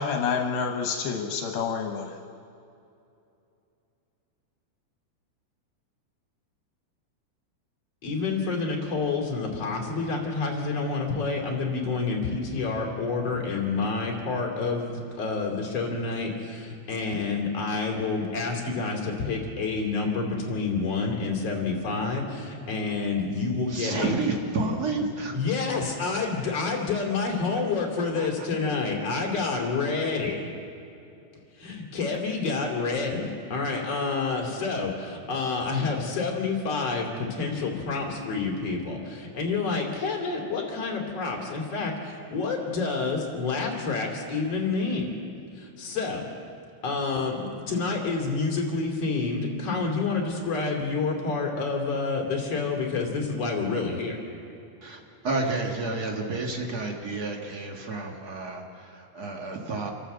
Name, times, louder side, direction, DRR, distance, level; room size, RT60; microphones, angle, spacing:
voice 1, 0.0-2.2, left 5 dB, 80° left, 3 dB, 2.9 m, -28 dB
voice 2, 8.0-24.1 25.3-30.5 31.6-45.1 45.6-46.2 46.8-54.2, left 4 dB, 45° left, 0 dB, 3.7 m, -28 dB
voice 3, 23.7-25.3 28.1-28.3 54.8-59.9, right 3 dB, 90° right, 1 dB, 0.8 m, -30 dB
27.5 x 12.5 x 7.9 m, 2.6 s
omnidirectional pair, 4.4 m